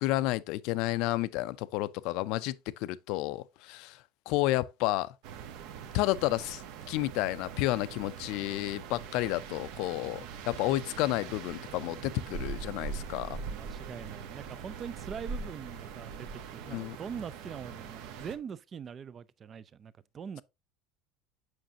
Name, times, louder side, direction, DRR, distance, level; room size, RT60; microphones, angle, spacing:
voice 1, 0.0-5.1 5.9-6.6 6.9-13.4 16.7-17.0, left 17 dB, 60° left, 0.4 m, -31 dB
sound 1, 5.2-18.4, right 6 dB, 60° right, 1.0 m, -42 dB
voice 2, 13.5-20.4, right 7 dB, 25° right, 0.3 m, -43 dB
7.7 x 6.0 x 2.8 m
cardioid pair, 165°, 0 cm